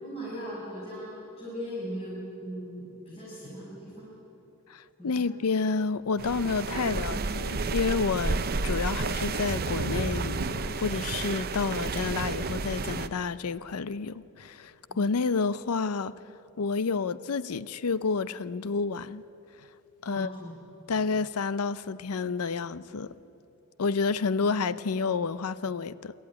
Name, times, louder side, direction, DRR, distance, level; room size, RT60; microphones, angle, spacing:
voice 1, 0.0-4.1 5.0-5.3 14.9-15.0 20.1-20.7, equal, 30° left, 6.2 m, -39 dB
voice 2, 4.7-16.1 16.6-19.2 20.0-20.3 20.9-23.2 23.8-26.1, left 4 dB, 80° left, 0.6 m, -29 dB
sound 1, 6.2-13.1, right 3 dB, 45° right, 0.7 m, -31 dB
24.5 x 13.5 x 9.8 m
head